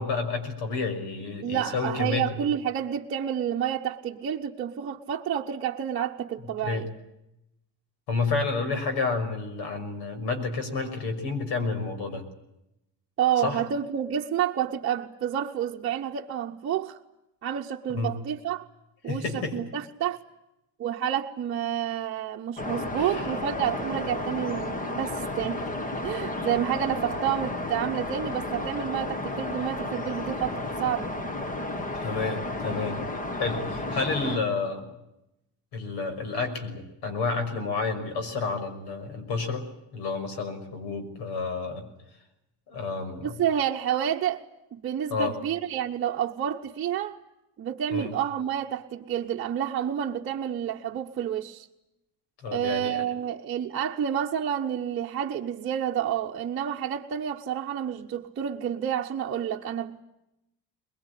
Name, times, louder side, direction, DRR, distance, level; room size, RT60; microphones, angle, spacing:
voice 1, 0.0-2.5 6.6-6.8 8.1-12.2 13.4-13.6 17.9-18.1 19.1-19.6 23.0-23.3 32.0-33.0 33.4-34.9 35.7-39.6 39.9-41.9 42.7-43.4 45.1-45.3 47.9-48.1 52.4-53.0, left 4 dB, 75° left, 6.1 m, -30 dB
voice 2, 1.4-6.9 13.2-17.0 17.4-18.7 19.0-20.2 20.8-25.6 26.0-31.1 43.2-44.4 44.7-47.2 47.6-51.7 52.5-60.0, right 9 dB, 30° right, 1.1 m, -29 dB
sound 1, 22.6-34.4, left 2 dB, 20° left, 1.3 m, -32 dB
22.5 x 22.0 x 10.0 m
cardioid pair, 180°, 40 cm